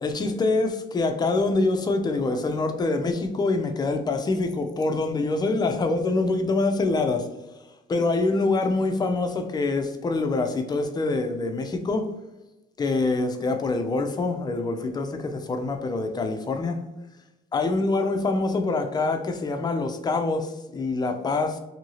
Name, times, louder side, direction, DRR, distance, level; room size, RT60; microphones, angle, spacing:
voice 1, 0.0-7.3 7.9-12.0 12.8-16.8 17.5-21.6, left 3 dB, 25° left, 0.4 m, -25 dB
2.7 x 2.6 x 3.0 m
cardioid pair, 110°, 17 cm